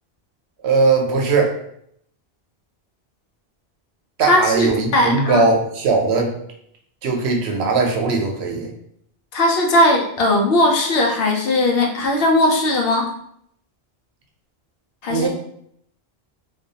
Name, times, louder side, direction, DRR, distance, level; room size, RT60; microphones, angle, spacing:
voice 1, 0.6-1.5 4.2-6.3 7.0-8.7 15.1-15.3, right 4 dB, 85° right, 1 dB, 0.9 m, -19 dB
voice 2, 4.2-5.4 9.3-13.1 15.0-15.3, left 1 dB, 70° left, 0 dB, 0.8 m, -18 dB
2.4 x 2.2 x 2.7 m, 0.70 s
omnidirectional pair, 1.1 m